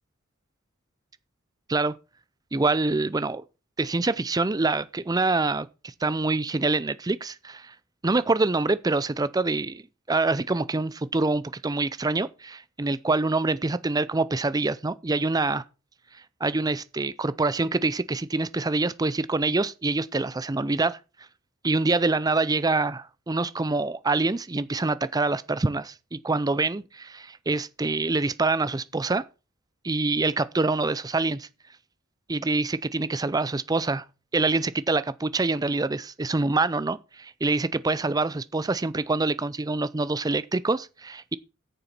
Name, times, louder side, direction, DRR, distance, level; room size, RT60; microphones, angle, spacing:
voice 1, 2.5-3.4 3.8-7.7 8.0-9.8 10.1-15.6 16.4-21.0 21.6-29.2 29.8-31.5 32.3-34.0 34.3-41.4, right 3 dB, 20° right, 0.5 m, -25 dB
9.1 x 6.9 x 5.9 m
head